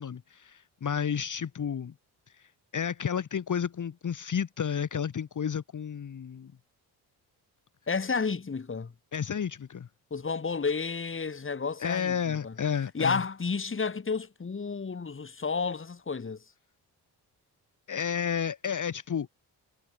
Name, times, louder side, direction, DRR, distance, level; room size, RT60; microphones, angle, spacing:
voice 1, 0.0-1.9 2.3-6.5 9.1-9.9 11.8-13.2 17.9-19.3, left 7 dB, 50° left, 2.1 m, -31 dB
voice 2, 7.9-8.9 10.1-12.5 12.9-16.4, left 5 dB, 30° left, 2.6 m, -31 dB
cardioid pair, 75°, 40 cm